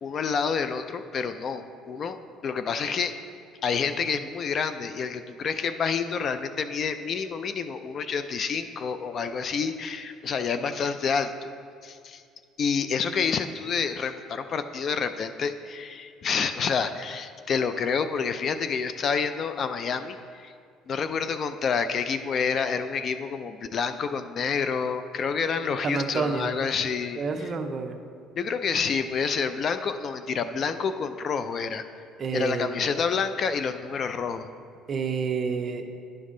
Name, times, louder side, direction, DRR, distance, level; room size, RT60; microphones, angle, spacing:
voice 1, 0.0-2.2 2.4-3.2 3.6-11.5 11.8-12.2 12.6-20.5 20.9-27.2 28.4-31.8 32.3-34.5, left 6 dB, 40° left, 10 dB, 0.3 m, -28 dB
voice 2, 25.8-26.5 27.2-28.0 32.2-32.9 34.9-35.9, right 5 dB, 35° right, 6 dB, 0.6 m, -29 dB
10.5 x 5.4 x 3.7 m, 2.3 s
cardioid pair, 120°, 0 cm